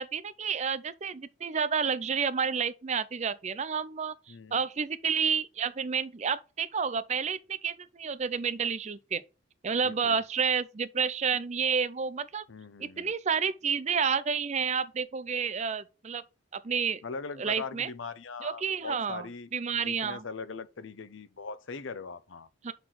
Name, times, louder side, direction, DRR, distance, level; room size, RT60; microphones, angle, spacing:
voice 1, 0.0-4.1 4.5-9.2 9.6-12.4 12.8-16.2 16.5-17.0 17.4-17.9 18.4-19.3 19.5-20.2 22.6-22.7, right 6 dB, 35° right, 0.4 m, -30 dB
voice 2, 4.3-4.6 9.8-10.2 12.5-13.1 17.0-22.7, left 4 dB, 70° left, 0.7 m, -41 dB
6.1 x 4.0 x 6.2 m
head